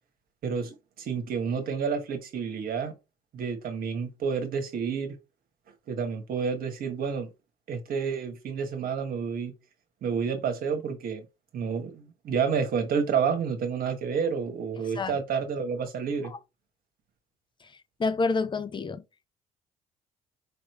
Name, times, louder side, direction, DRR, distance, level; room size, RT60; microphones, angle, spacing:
voice 1, 0.4-3.0 3.3-5.1 5.9-7.3 7.7-9.5 10.0-11.3 11.5-16.3, right 6 dB, 55° right, 1.3 m, -29 dB
voice 2, 18.0-19.0, left 4 dB, 25° left, 0.7 m, -28 dB
5.1 x 3.1 x 3.0 m
hypercardioid pair, 55°, 18 cm